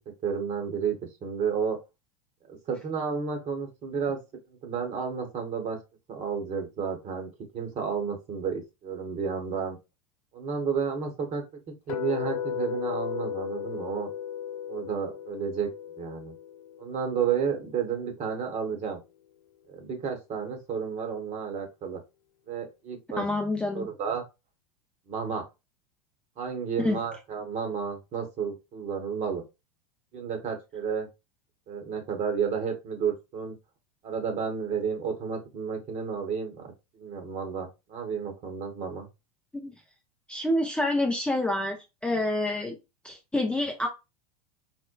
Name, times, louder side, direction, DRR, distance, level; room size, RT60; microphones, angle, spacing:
voice 1, 0.2-1.8 2.5-4.2 4.6-5.8 6.1-9.8 10.3-11.4 11.9-14.1 14.7-15.7 16.0-16.3 16.8-19.0 19.7-22.0 22.5-23.2 23.7-24.2 25.1-25.4 26.4-29.4 30.1-31.1 31.7-33.5 34.0-39.1, right 6 dB, 35° right, 4 dB, 1.1 m, -31 dB
sound 1, 11.9-18.0, left 9 dB, 70° left, 0.4 m, -36 dB
voice 2, 23.2-23.9 26.8-27.0 39.5-39.7 40.3-41.8 42.0-42.8 43.0-43.9, left 1 dB, 5° left, 1 dB, 0.5 m, -27 dB
4.3 x 2.1 x 2.2 m, 0.25 s
figure-of-eight pair, 85°, 19 cm